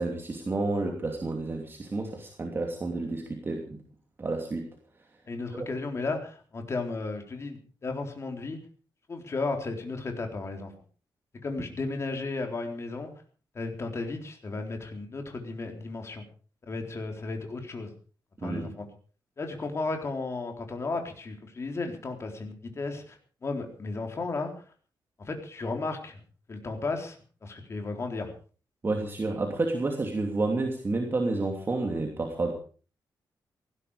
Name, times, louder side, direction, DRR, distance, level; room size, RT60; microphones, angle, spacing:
voice 1, 0.0-3.8 4.2-4.7 5.5-5.7 18.4-18.7 28.8-32.5, right 2 dB, 30° right, 2 dB, 2.8 m, -30 dB
voice 2, 5.3-8.6 9.1-10.7 11.4-13.1 13.5-16.2 16.6-17.9 18.4-18.9 19.4-23.2 23.4-24.5 25.2-26.2 26.5-27.2 27.4-28.3, left 3 dB, 35° left, 4 dB, 3.9 m, -34 dB
18.5 x 15.5 x 5.0 m, 0.39 s
wide cardioid pair, 145°, 8 cm